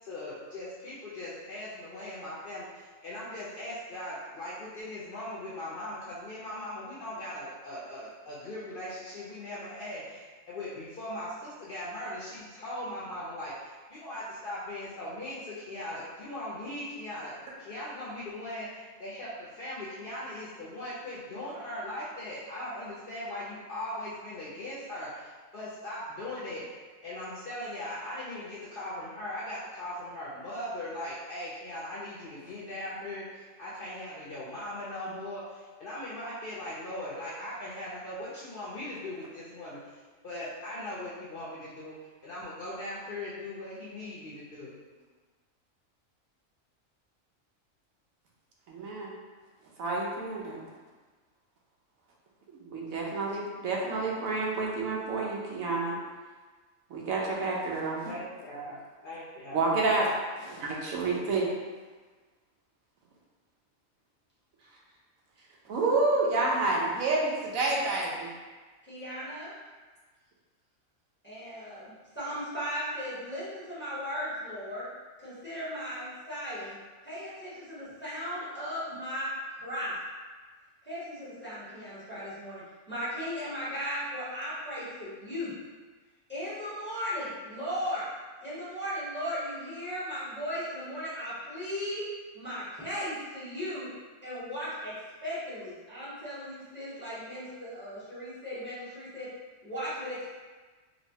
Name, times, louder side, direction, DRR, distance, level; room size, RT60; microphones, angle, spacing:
voice 1, 0.0-17.3 17.6-26.6 27.0-42.0 42.2-44.7 58.1-58.8 59.0-59.6, left 1 dB, 60° left, -8 dB, 0.6 m, -39 dB
voice 2, 48.7-49.1 49.8-50.6 52.6-56.0 56.9-58.1 59.5-60.1 60.4-61.5 65.7-68.3, right 3 dB, 90° right, -3 dB, 1.0 m, -29 dB
voice 3, 68.9-69.5 71.2-74.9 75.2-76.8 77.0-80.0 80.8-85.5 86.3-88.1 88.4-92.1 92.3-93.9 94.2-94.9 95.2-99.3 99.6-100.3, equal, 10° left, -11 dB, 0.6 m, -36 dB
3.0 x 2.1 x 2.7 m, 1.4 s
omnidirectional pair, 1.4 m